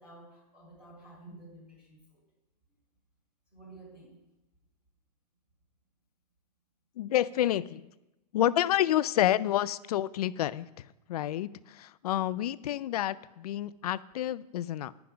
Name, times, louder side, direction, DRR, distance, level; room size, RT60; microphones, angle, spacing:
voice 1, 0.0-2.2 3.5-4.1 12.1-12.3, right 2 dB, 10° right, -4 dB, 1.8 m, -52 dB
voice 2, 7.0-7.9 8.3-14.9, left 12 dB, 65° left, 18 dB, 0.4 m, -29 dB
10.5 x 5.9 x 5.0 m, 0.96 s
supercardioid pair, 175°, 21 cm